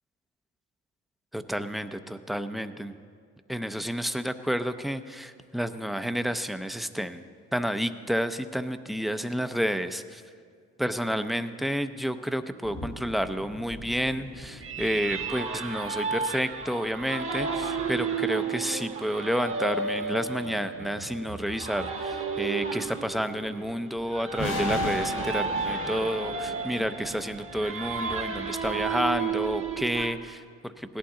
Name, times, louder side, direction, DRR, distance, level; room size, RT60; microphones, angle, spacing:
voice 1, 1.3-3.0 3.5-7.2 7.5-10.2 10.8-31.0, equal, ahead, 10 dB, 0.5 m, -30 dB
sound 1, 12.6-18.9 24.4-29.0, left 2 dB, 85° left, 2.4 m, -40 dB
sound 2, 14.6-30.1, right 5 dB, 45° right, 1.3 m, -32 dB
17.0 x 11.5 x 3.7 m, 2.2 s
cardioid pair, 90°, 30 cm